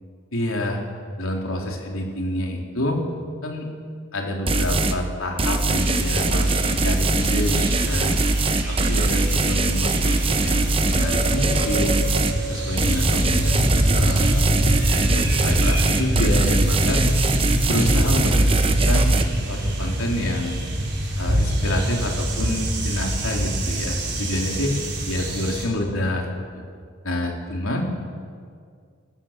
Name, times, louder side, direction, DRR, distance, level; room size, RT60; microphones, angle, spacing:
voice 1, 0.3-0.8 1.2-3.0 3.4-3.7 4.1-8.2 8.7-12.0 12.5-14.4 15.0-17.0 17.7-19.2 19.5-20.6 21.2-26.2 26.5-26.6 27.0-27.9, left 1 dB, 80° left, 0 dB, 3.6 m, -28 dB
sound 1, 4.5-5.0 5.4-12.4 12.8-19.2, right 2 dB, 25° right, 0.9 m, -21 dB
sound 2, 5.7-25.7, right 1 dB, 50° right, 5.2 m, -26 dB
29.0 x 14.0 x 7.5 m, 2.1 s
head